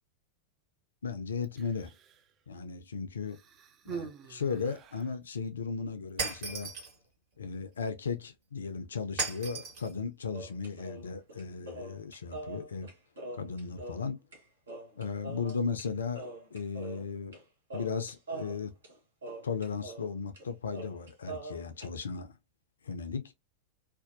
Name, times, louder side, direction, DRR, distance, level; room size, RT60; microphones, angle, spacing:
voice 1, 1.0-1.9 2.5-3.4 3.9-6.7 7.4-12.9 13.3-14.2 15.0-16.2 16.5-17.4 17.7-18.7 19.4-22.3 22.8-23.3, left 5 dB, 70° left, 0.4 m, -36 dB
Human voice, 1.4-2.3 3.2-5.2 6.1-6.2, right 7 dB, 30° right, 0.4 m, -45 dB
Shatter, 6.2-6.9 9.2-9.9, right 4 dB, 50° right, 1.3 m, -35 dB
sound 1, 10.3-14.4 14.7-15.9 16.1-17.4 17.7-20.1 20.4-20.5 20.7-21.9, right 2 dB, 65° right, 0.9 m, -43 dB
2.6 x 2.1 x 2.5 m
figure-of-eight pair, 90°, 0 cm